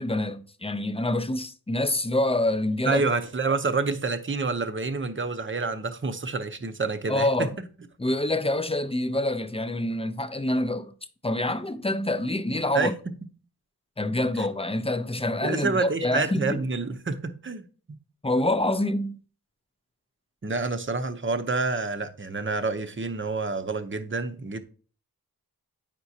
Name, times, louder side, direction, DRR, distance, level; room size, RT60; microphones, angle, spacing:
voice 1, 0.0-3.0 7.1-7.5 8.0-10.9 11.2-12.9 14.0-16.6 18.2-19.2, left 1 dB, 15° left, 0.5 m, -26 dB
voice 2, 2.8-7.5 12.7-12.9 15.4-17.6 20.4-24.6, right 4 dB, 30° right, 0.7 m, -28 dB
8.9 x 5.9 x 2.8 m
wide cardioid pair, 80°, 38 cm